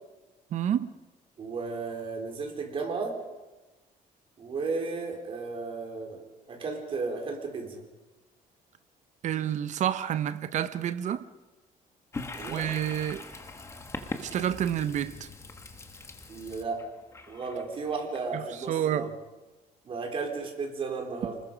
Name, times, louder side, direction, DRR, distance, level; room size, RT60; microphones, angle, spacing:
voice 1, 0.5-0.9 9.2-11.3 12.5-13.2 14.2-15.3 18.3-18.4 18.7-19.1, right 10 dB, 50° right, 1.0 m, -29 dB
voice 2, 1.4-3.2 4.4-6.2 6.5-7.8 12.3-12.7 16.3-16.8 17.3-19.1 19.8-21.4, right 4 dB, 35° right, 3.7 m, -34 dB
Toilet flush, 12.1-18.7, left 3 dB, 20° left, 1.4 m, -42 dB
26.0 x 20.0 x 5.2 m
cardioid pair, 170°, 15 cm